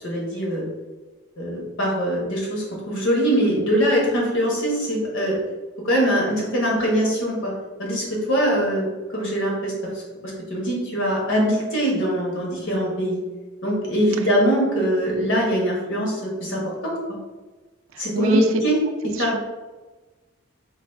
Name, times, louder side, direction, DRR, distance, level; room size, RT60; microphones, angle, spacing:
voice 1, 0.0-0.7 1.4-5.4 5.8-7.5 7.8-13.2 13.6-16.9 18.0-18.8 19.2-19.3, equal, 70° left, -3 dB, 1.2 m, -22 dB
voice 2, 17.9-18.5 19.2-19.4, right 5 dB, 90° right, 8 dB, 0.4 m, -27 dB
3.9 x 2.4 x 3.4 m, 1.2 s
head